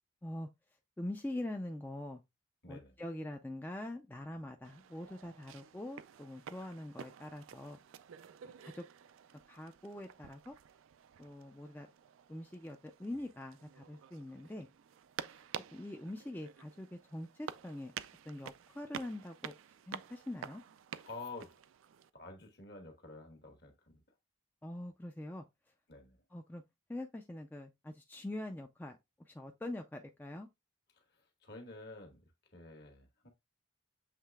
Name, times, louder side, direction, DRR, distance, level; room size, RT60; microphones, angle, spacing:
voice 1, 1.0-2.2 2.7-7.8 8.4-8.9 9.5-10.5 11.2-11.9 12.3-14.7 15.3-15.4 15.7-17.9 18.2-19.5 19.9-20.6 24.6-25.4 26.3-26.6 26.9-29.0 29.3-30.5, left 1 dB, 10° left, 0.3 m, -44 dB
voice 2, 2.6-3.0 21.0-21.5 22.1-24.0 25.9-26.2 30.9-33.3, left 3 dB, 55° left, 1.3 m, -50 dB
sound 1, 4.6-22.1, right 8 dB, 90° right, 0.4 m, -50 dB
7.4 x 3.2 x 2.2 m
head